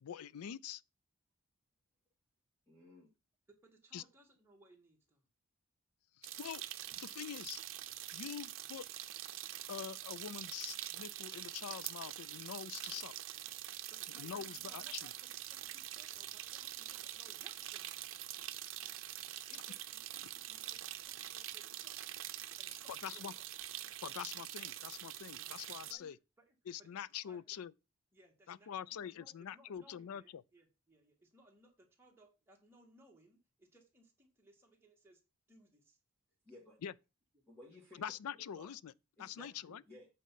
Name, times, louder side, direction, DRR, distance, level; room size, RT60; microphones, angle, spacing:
voice 1, 0.0-0.8 3.9-4.0 6.2-6.6 7.0-7.6 8.1-8.9 9.7-13.1 14.2-15.1 23.0-23.3 24.0-26.2 26.7-27.7 28.5-30.4 36.8-36.9 38.0-38.9 39.2-39.8, left 9 dB, 80° left, 0.4 m, -45 dB
voice 2, 2.7-3.1 36.4-36.8 37.5-38.0 38.3-38.7 39.2-40.1, left 1 dB, 10° left, 1.9 m, -57 dB
voice 3, 3.5-5.3 13.9-18.0 19.5-21.9 22.6-23.5 25.3-25.5 25.8-26.9 27.2-27.6 28.1-35.2 35.5-36.0 37.3-37.4 39.5-39.8, right 2 dB, 10° right, 1.7 m, -65 dB
sound 1, 6.2-25.9, right 13 dB, 60° right, 0.7 m, -45 dB
8.4 x 4.3 x 5.6 m
head